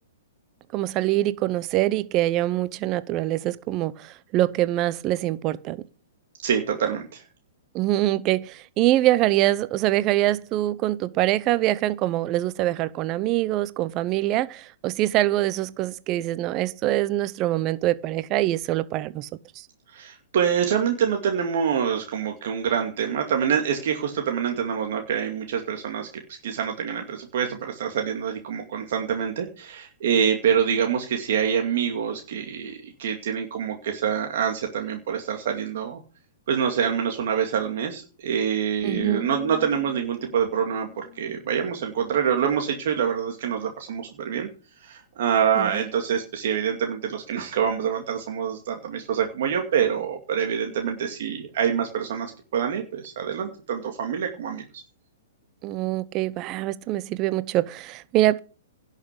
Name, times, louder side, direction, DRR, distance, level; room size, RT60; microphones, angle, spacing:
voice 1, 0.7-5.8 7.7-19.3 19.6-19.7 38.8-39.2 45.6-45.8 55.6-58.4, right 15 dB, 30° right, 0.7 m, -24 dB
voice 2, 6.4-7.2 19.9-26.1 26.4-36.0 36.5-44.5 44.8-54.6, right 8 dB, 60° right, 2.3 m, -26 dB
sound 1, 38.9-42.6, left 16 dB, 50° left, 2.5 m, -42 dB
11.5 x 6.6 x 8.3 m
hypercardioid pair, 145°, 0 cm